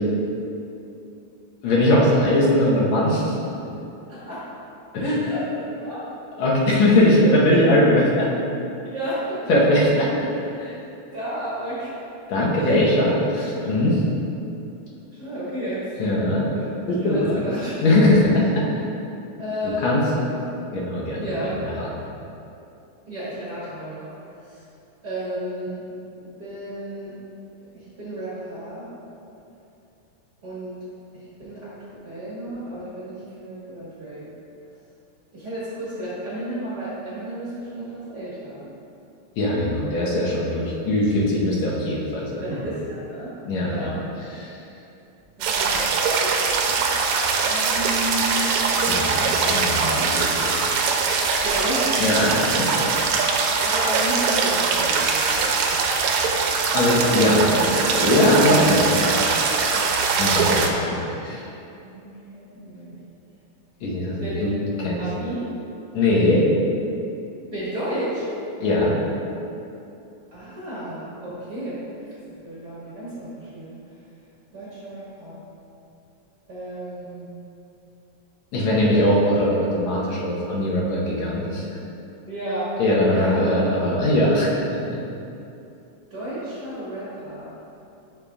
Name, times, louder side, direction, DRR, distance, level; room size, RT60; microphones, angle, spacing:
voice 1, 1.6-3.3 4.9-5.2 6.4-8.3 9.5-10.1 10.6-10.8 12.3-14.0 16.0-16.4 16.9-17.3 17.8-18.4 19.8-20.0 20.7-21.5 21.8-21.9 39.4-42.4 43.5-43.9 44.3-44.5 48.9-50.6 52.0-52.3 52.6-52.9 56.7-59.2 60.2-61.5 63.8-64.5 64.8-65.0 65.9-66.4 68.6-69.0 78.5-81.6 82.8-84.6 84.9-85.0, left 1 dB, 75° left, -5 dB, 2.3 m, -20 dB
voice 2, 4.1-4.5 5.2-6.1 8.8-9.4 11.1-11.9 12.5-12.7 15.1-16.0 16.4-16.7 17.0-18.1 19.4-20.4 21.2-21.7 23.1-24.1 24.4-24.6 25.0-25.8 26.1-27.1 27.7-28.9 30.4-30.8 31.1-34.3 35.3-38.6 39.8-40.0 42.4-43.4 43.6-44.0 45.4-45.9 46.7-46.8 47.1-48.7 51.4-52.0 53.0-55.6 61.8-63.0 64.2-64.6 65.0-65.5 67.5-68.2 70.3-71.8 72.4-73.8 74.5-75.4 76.5-77.3 82.3-82.8 83.1-83.5 84.5-84.7 86.1-87.5, right 1 dB, 40° right, -10 dB, 1.8 m, -32 dB
sound 1, 45.4-60.7, right 4 dB, 80° right, 2.0 m, -22 dB
10.5 x 5.5 x 2.4 m, 2.7 s
omnidirectional pair, 3.3 m